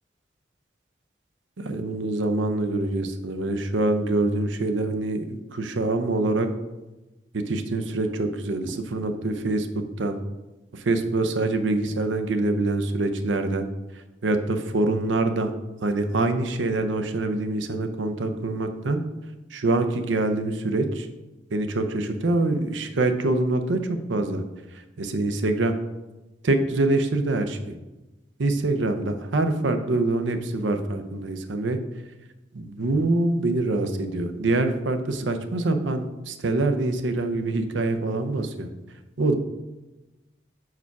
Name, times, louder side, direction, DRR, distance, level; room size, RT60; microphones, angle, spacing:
voice 1, 1.6-6.5 7.3-10.2 10.7-13.7 14.2-15.5 15.8-19.0 19.5-21.1 21.5-24.4 25.0-25.7 26.4-27.8 28.4-31.8 32.5-38.7 39.2-39.3, right 2 dB, 85° right, 8 dB, 0.6 m, -25 dB
4.8 x 4.7 x 5.7 m, 1.1 s
head